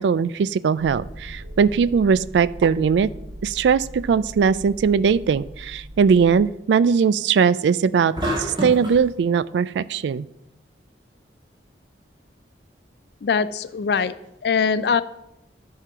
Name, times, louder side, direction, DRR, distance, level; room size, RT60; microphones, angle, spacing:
voice 1, 0.0-3.1 3.4-8.1 8.4-10.2, right 6 dB, 80° right, 18 dB, 0.3 m, -20 dB
sound 1, 0.8-6.4, equal, 50° right, 2.1 m, -39 dB
sound 2, 8.2-9.0, right 1 dB, 25° right, 1.6 m, -26 dB
voice 2, 13.2-14.1 14.4-15.0, left 6 dB, 65° left, 14 dB, 0.4 m, -22 dB
11.0 x 3.8 x 5.7 m, 0.86 s
head